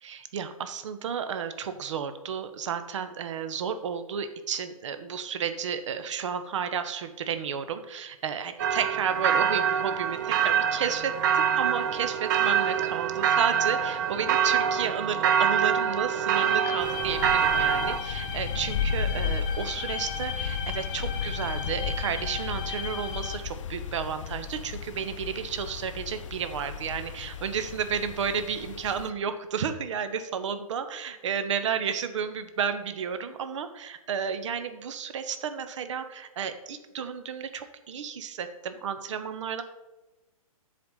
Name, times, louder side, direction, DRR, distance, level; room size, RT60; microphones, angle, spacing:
voice 1, 0.0-39.6, right 7 dB, 55° right, 10 dB, 0.7 m, -32 dB
sound 1, 8.6-18.0, right 8 dB, 35° right, 0.4 m, -25 dB
sound 2, 16.3-23.4, left 6 dB, 35° left, 0.9 m, -37 dB
sound 3, 16.8-29.1, left 6 dB, 55° left, 0.5 m, -34 dB
7.4 x 4.3 x 5.5 m, 1.1 s
figure-of-eight pair, 120°, 19 cm